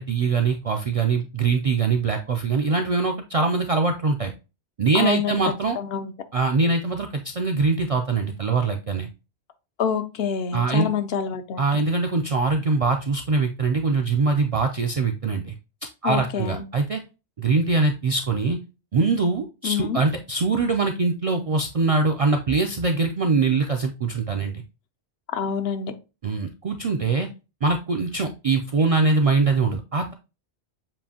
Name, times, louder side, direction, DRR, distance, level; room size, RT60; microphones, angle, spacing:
voice 1, 0.0-4.3 4.8-5.8 6.3-9.1 10.5-10.9 11.6-15.6 16.0-17.0 17.4-18.6 18.9-24.6 26.2-27.3 27.6-30.1, right 4 dB, 60° right, 3 dB, 0.3 m, -23 dB
voice 2, 4.9-5.4 5.8-6.1 9.8-11.8 16.0-16.6 19.6-20.0 25.3-25.9, left 7 dB, 75° left, 9 dB, 0.8 m, -27 dB
7.3 x 2.6 x 2.7 m, 0.29 s
omnidirectional pair, 1.1 m